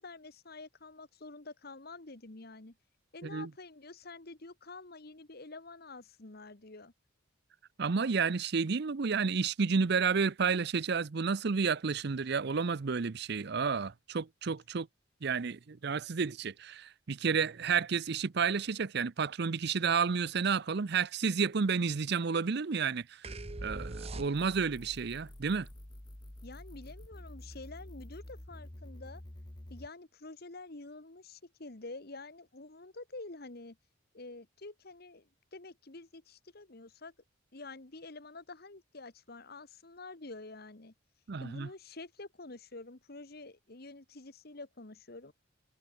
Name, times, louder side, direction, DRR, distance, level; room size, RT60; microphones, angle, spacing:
voice 1, 0.0-2.8 3.1-6.9 26.4-29.2 29.7-33.8 34.1-37.1 37.5-40.9 41.4-45.3, left 3 dB, 50° left, 1.5 m, -48 dB
voice 2, 7.8-14.9 15.2-23.2 23.6-25.7 41.3-41.7, right 5 dB, 55° right, 0.6 m, -31 dB
sound 1, 23.2-24.8, right 2 dB, 30° right, 1.0 m, -41 dB
sound 2, 24.3-29.9, left 1 dB, 20° left, 1.2 m, -49 dB
head